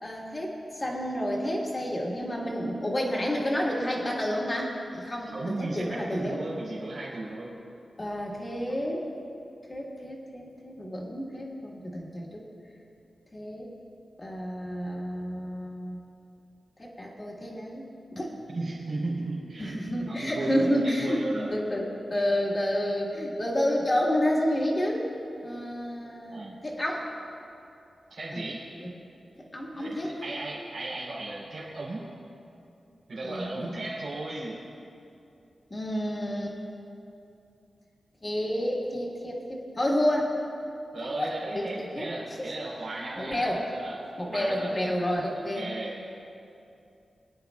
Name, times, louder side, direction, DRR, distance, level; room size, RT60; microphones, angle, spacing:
voice 1, 0.0-6.6 8.0-9.1 9.7-12.4 13.3-13.7 14.2-16.0 16.8-18.4 19.6-25.0 25.4-27.1 28.3-28.4 28.8-28.9 29.5-30.3 33.2-33.9 35.7-36.5 38.2-40.4 41.0-42.1 42.4-42.7 43.2-43.7 44.2-45.7, equal, 25° left, -2 dB, 1.6 m, -30 dB
voice 2, 5.3-7.6 18.5-19.8 20.1-21.5 26.3-26.6 28.1-28.7 29.7-32.1 33.1-34.6 40.9-44.0 44.3-44.8 45.5-46.0, right 2 dB, 85° right, -6 dB, 3.0 m, -35 dB
21.5 x 10.0 x 2.3 m, 2.7 s
wide cardioid pair, 155°, 0 cm